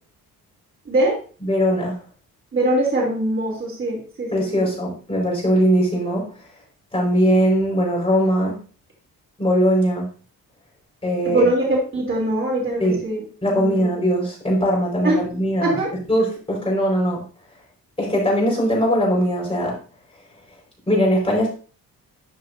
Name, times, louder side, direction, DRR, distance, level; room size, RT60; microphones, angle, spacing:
voice 1, 0.8-1.2 2.5-4.7 11.2-13.9 15.0-15.2 15.6-15.9, right 1 dB, 35° right, -2 dB, 3.1 m, -22 dB
voice 2, 1.4-2.0 4.3-6.3 6.9-8.6 9.4-10.1 11.0-11.5 12.8-13.0 13.4-15.7 16.1-17.2 18.0-19.8 20.9-21.5, equal, 15° left, -3 dB, 4.9 m, -20 dB
12.5 x 6.7 x 2.7 m, 0.39 s
wide cardioid pair, 150°, 36 cm